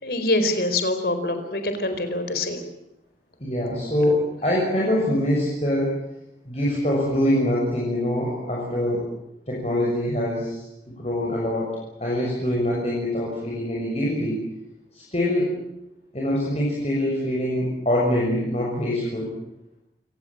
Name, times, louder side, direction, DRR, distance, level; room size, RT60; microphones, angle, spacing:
voice 1, 0.0-2.6, left 2 dB, 55° left, 8 dB, 4.5 m, -25 dB
voice 2, 3.4-6.0 6.4-9.1 9.5-11.7 12.0-14.4 14.9-15.5 16.1-19.3, left 1 dB, 35° left, -4 dB, 6.7 m, -24 dB
29.0 x 18.5 x 8.7 m, 0.85 s
head